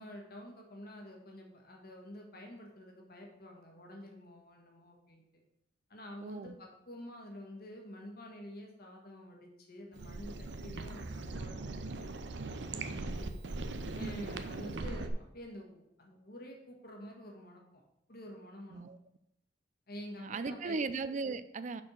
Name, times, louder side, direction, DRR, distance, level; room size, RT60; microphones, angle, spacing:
voice 1, 0.0-5.2 5.9-12.2 12.5-13.3 13.9-17.8 18.1-18.8 19.9-20.8, equal, 55° left, 1.6 m, -49 dB
voice 2, 6.2-6.5 14.0-14.3 18.7-19.0 20.2-21.8, right 4 dB, 45° right, 0.4 m, -37 dB
sound 1, 9.9-15.1, right 3 dB, 75° right, 0.7 m, -40 dB
6.1 x 4.4 x 6.4 m
head